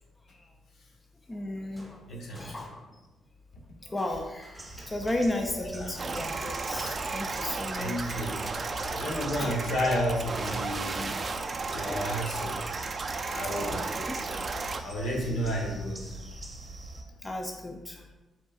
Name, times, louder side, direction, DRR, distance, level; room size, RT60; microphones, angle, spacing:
voice 1, 1.3-2.0 2.3-2.8 3.8-8.3 9.4-9.6 11.3-11.4 11.8-12.0 13.6-14.1 15.3-15.4 17.0-18.1, left 1 dB, 20° left, 3 dB, 0.5 m, -35 dB
sound 1, 1.8-3.2 4.0-7.0, equal, 5° left, 1.1 m, -51 dB
voice 2, 2.1-2.5 5.6-6.0 7.7-8.5 8.8-11.2 11.7-12.7 13.3-13.9 14.8-16.2, equal, 65° left, 0 dB, 1.0 m, -32 dB
sound 2, 4.6-17.0, right 2 dB, 25° right, 0.9 m, -43 dB
sound 3, 6.0-14.8, right 4 dB, 40° right, 0.4 m, -34 dB
5.3 x 3.9 x 2.4 m, 1.1 s
supercardioid pair, 65°, 0 cm